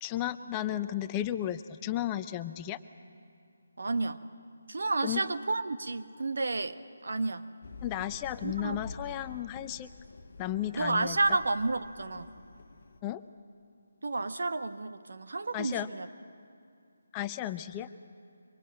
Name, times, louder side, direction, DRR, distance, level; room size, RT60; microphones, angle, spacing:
voice 1, 0.0-2.8 5.0-5.2 7.8-9.9 10.4-11.2 13.0-13.2 15.5-15.9 17.1-17.9, left 12 dB, 20° left, 11 dB, 0.6 m, -34 dB
voice 2, 3.8-4.2 4.7-7.5 8.4-8.8 10.7-12.3 14.0-16.1, right 3 dB, 60° right, 9 dB, 1.1 m, -31 dB
sound 1, 7.6-13.0, left 3 dB, 50° left, 1.2 m, -47 dB
25.0 x 25.0 x 7.6 m, 2.5 s
figure-of-eight pair, 150°, 0 cm